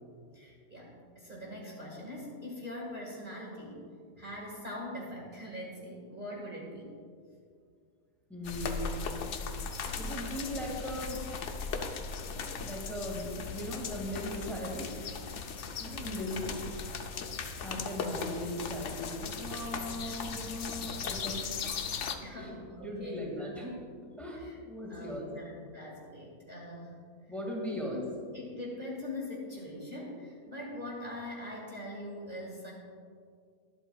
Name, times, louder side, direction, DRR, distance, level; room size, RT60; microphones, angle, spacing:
voice 1, 0.3-3.9 4.2-7.0 20.0-20.4 22.2-23.2 24.3-24.6 24.9-26.9 27.7-32.7, left 1 dB, 30° right, -4 dB, 1.9 m, -42 dB
voice 2, 8.3-9.0 9.9-11.2 12.6-14.9 15.8-16.6 17.3-21.5 22.4-23.7 24.2-25.3 27.3-28.0, equal, ahead, -2 dB, 1.9 m, -38 dB
sound 1, 8.4-22.2, left 5 dB, 55° left, 0.9 m, -38 dB
22.0 x 8.3 x 2.3 m, 2.2 s
omnidirectional pair, 1.8 m